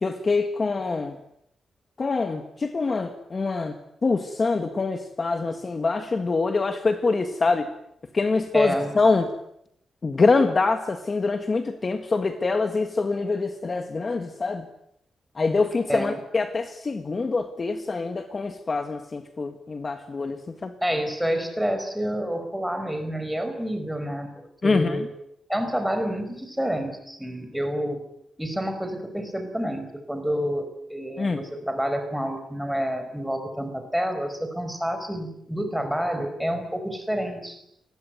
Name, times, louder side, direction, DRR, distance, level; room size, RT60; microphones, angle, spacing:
voice 1, 0.0-1.2 2.0-3.8 4.0-7.7 8.1-9.3 10.0-14.6 15.3-20.7 24.6-25.1 31.2-31.4, left 3 dB, 30° left, 8 dB, 1.7 m, -25 dB
voice 2, 8.5-8.9 15.9-16.2 20.8-25.1 25.5-28.0 28.4-37.6, equal, ahead, 6 dB, 5.2 m, -28 dB
28.0 x 20.5 x 9.4 m, 0.77 s
wide cardioid pair, 165°, 0 cm